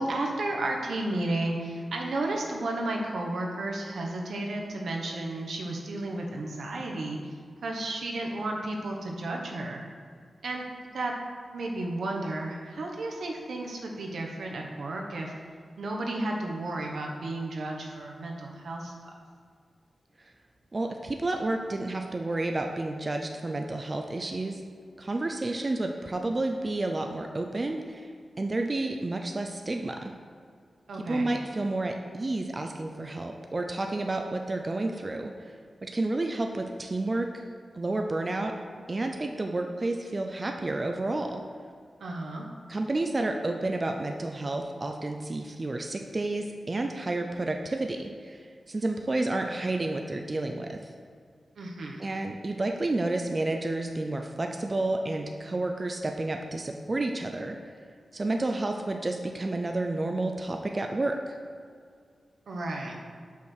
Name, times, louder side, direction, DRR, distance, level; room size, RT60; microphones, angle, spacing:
voice 1, 0.0-7.2 7.6-9.8 10.4-10.6 10.9-11.1 11.5-15.3 15.8-18.9 30.9-31.3 42.0-42.5 51.6-52.1 62.5-63.0, right 2 dB, 75° right, 0 dB, 1.0 m, -33 dB
voice 2, 20.7-24.6 25.0-28.1 28.4-30.0 31.1-35.3 35.8-37.4 37.7-38.5 38.9-41.4 42.7-50.8 52.0-57.6 58.1-61.2, right 2 dB, 25° right, 3 dB, 0.3 m, -30 dB
5.7 x 4.4 x 6.3 m, 2.1 s
wide cardioid pair, 165°, 0 cm